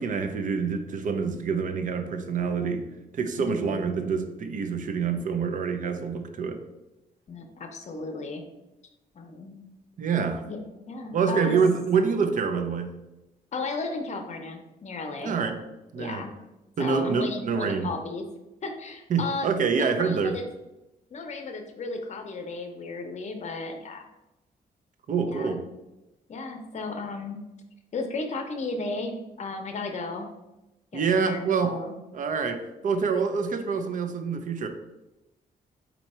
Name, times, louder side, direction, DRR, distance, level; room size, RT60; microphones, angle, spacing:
voice 1, 0.0-2.9 3.1-6.6 10.0-10.4 11.1-12.9 15.2-15.6 15.9-16.2 16.8-17.9 19.1-20.4 25.1-25.6 30.9-31.7 32.1-34.7, right 5 dB, 55° right, 7 dB, 0.5 m, -26 dB
voice 2, 3.3-3.8 7.3-8.4 9.1-9.6 10.5-11.6 13.5-15.3 16.0-16.3 16.8-18.3 18.6-20.4 21.1-24.1 25.3-25.6 26.3-27.4 27.9-30.3 30.9-31.9, left 3 dB, 45° left, 5 dB, 0.7 m, -35 dB
4.4 x 2.8 x 4.2 m, 0.98 s
wide cardioid pair, 125°, 16 cm